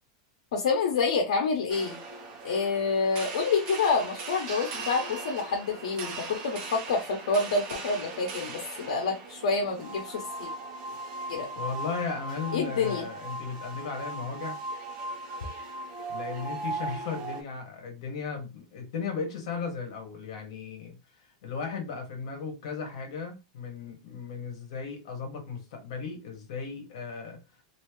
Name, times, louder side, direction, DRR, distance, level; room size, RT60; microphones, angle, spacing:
voice 1, 0.5-2.0 2.4-10.5 11.3-11.5 12.5-13.0, left 4 dB, 85° left, 0.9 m, -28 dB
sound 1, 1.7-17.4, right 3 dB, 30° right, 0.9 m, -38 dB
voice 2, 11.5-14.6 16.1-27.4, left 5 dB, 55° left, 1.5 m, -36 dB
3.2 x 2.8 x 3.1 m
supercardioid pair, 175°, 4 cm